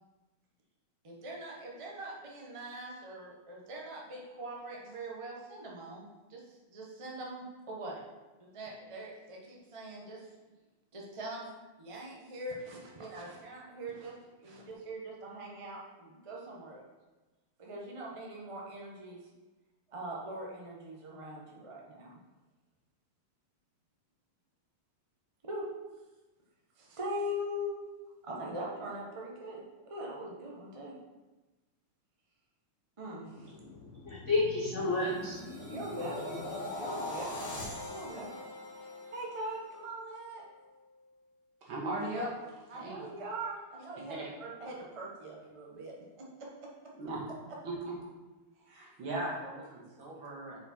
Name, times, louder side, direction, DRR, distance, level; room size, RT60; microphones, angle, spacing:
voice 1, 1.0-8.0 8.4-10.3 10.9-11.5 11.8-14.1 14.4-16.8 17.6-19.2 19.9-22.2 25.4-25.7 26.8-27.8 28.2-30.9 33.0-33.5 35.7-36.4 36.7-37.5 37.8-38.3 39.1-40.4 42.7-44.1 44.4-46.9, right 1 dB, 45° right, -3 dB, 0.4 m, -42 dB
voice 2, 33.6-35.7 36.7-36.8, left 3 dB, 65° left, -3 dB, 0.7 m, -32 dB
sound 1, 33.7-39.9 40.3-40.6, left 1 dB, 50° left, 2.0 m, -42 dB
voice 3, 41.6-42.3 42.7-43.1 44.1-44.3 47.0-47.2 47.6-47.7 48.7-50.6, right 1 dB, 65° right, -4 dB, 2.3 m, -38 dB
6.5 x 4.6 x 4.3 m, 1.2 s
omnidirectional pair, 2.4 m